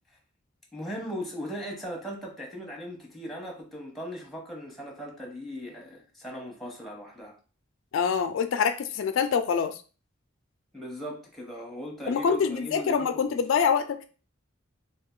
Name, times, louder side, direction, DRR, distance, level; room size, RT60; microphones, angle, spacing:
voice 1, 0.7-7.4 10.7-13.4, equal, ahead, 0.8 m, -38 dB
voice 2, 7.9-9.8 12.1-14.0, left 6 dB, 70° left, 0.3 m, -25 dB
2.7 x 2.4 x 3.7 m
head